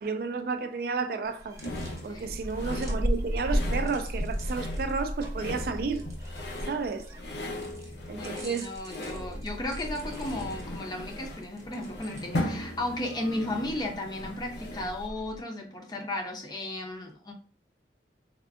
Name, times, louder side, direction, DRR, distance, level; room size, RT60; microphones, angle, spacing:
voice 1, 0.0-1.6 2.0-6.1 6.7-7.1 8.1-8.7, right 4 dB, 55° right, 0.3 m, -32 dB
sound 1, 1.2-15.4, equal, 15° right, 0.6 m, -36 dB
sound 2, 1.6-15.1, left 1 dB, 75° left, 0.8 m, -39 dB
voice 2, 8.2-17.3, left 1 dB, 25° left, 0.5 m, -35 dB
3.4 x 2.4 x 2.4 m
head